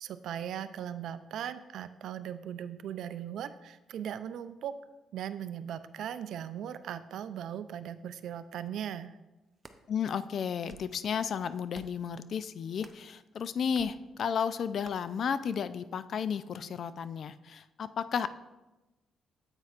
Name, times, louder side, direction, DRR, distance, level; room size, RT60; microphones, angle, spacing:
voice 1, 0.0-4.7 5.1-9.2, right 9 dB, 75° right, 12 dB, 0.4 m, -38 dB
sound 1, 9.4-9.8 10.5-11.0 11.7-12.1 12.8-13.1 13.7-13.9 14.8-15.0, right 3 dB, 25° right, 0.6 m, -53 dB
voice 2, 9.9-18.3, left 7 dB, 60° left, 14 dB, 0.4 m, -33 dB
9.5 x 8.0 x 2.5 m, 1.1 s
cardioid pair, 90°, 0 cm